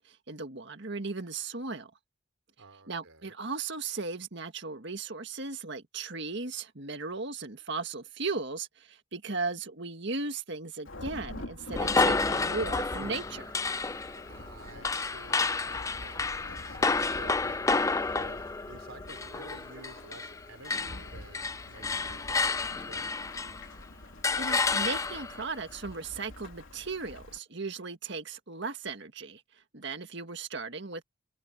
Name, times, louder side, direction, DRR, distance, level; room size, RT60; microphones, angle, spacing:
voice 1, 0.0-1.9 2.9-13.6 24.4-29.4 29.7-31.0, right 4 dB, 55° right, 1.8 m, -36 dB
voice 2, 2.6-3.3 14.2-17.7 18.1-23.3, right 3 dB, 80° right, 3.7 m, -51 dB
Thunderstorm / Rain, 10.8-27.4, left 1 dB, 70° left, 3.1 m, -46 dB
sound 1, 11.7-20.4 20.6-23.7 24.2-25.4, left 4 dB, 15° left, 0.3 m, -30 dB
head